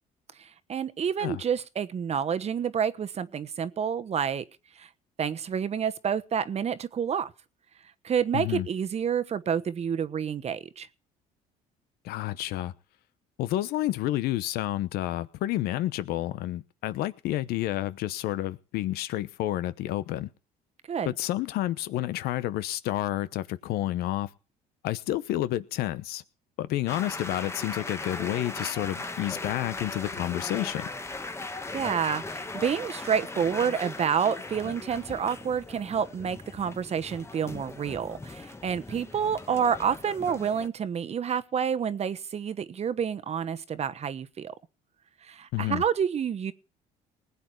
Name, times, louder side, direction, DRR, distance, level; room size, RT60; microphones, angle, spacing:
voice 1, 0.4-4.4 4.8-4.9 5.2-7.3 8.0-10.9 20.9-21.1 31.7-44.5 45.2-46.5, right 7 dB, 40° right, 1.1 m, -29 dB
voice 2, 8.3-8.7 12.0-12.7 13.4-20.3 21.1-24.3 24.8-26.2 26.6-30.9 45.5-45.8, left 14 dB, 75° left, 0.9 m, -30 dB
sound 1, 26.9-40.7, left 3 dB, 15° left, 1.3 m, -38 dB
20.0 x 8.4 x 4.6 m
supercardioid pair, 85°, 16 cm